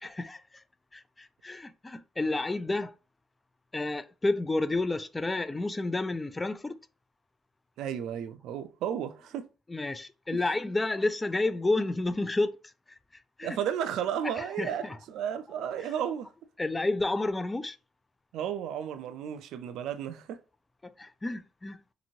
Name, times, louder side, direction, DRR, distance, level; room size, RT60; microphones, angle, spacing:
voice 1, 0.0-0.6 0.9-2.9 3.7-6.8 9.7-12.5 12.9-13.0 13.4-13.6 14.4-15.0 16.6-17.8 20.8-21.8, left 2 dB, 20° left, 0.3 m, -30 dB
voice 2, 7.8-9.5 13.4-16.3 18.3-20.4, right 9 dB, 85° right, 0.3 m, -33 dB
2.9 x 2.6 x 2.7 m
cardioid pair, 90°, 0 cm